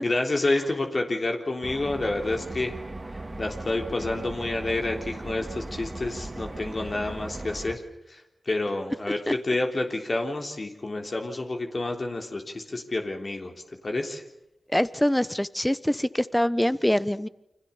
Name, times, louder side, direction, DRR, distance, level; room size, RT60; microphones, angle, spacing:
voice 1, 0.0-2.8 3.4-7.8 8.1-13.5 13.8-14.2, left 2 dB, 45° left, 3 dB, 3.5 m, -29 dB
sound 1, 1.6-7.8, right 2 dB, 30° right, 2.6 m, -37 dB
voice 2, 14.7-17.3, equal, 10° left, 15 dB, 1.1 m, -24 dB
29.5 x 25.5 x 7.1 m, 0.83 s
wide cardioid pair, 70°, 0 cm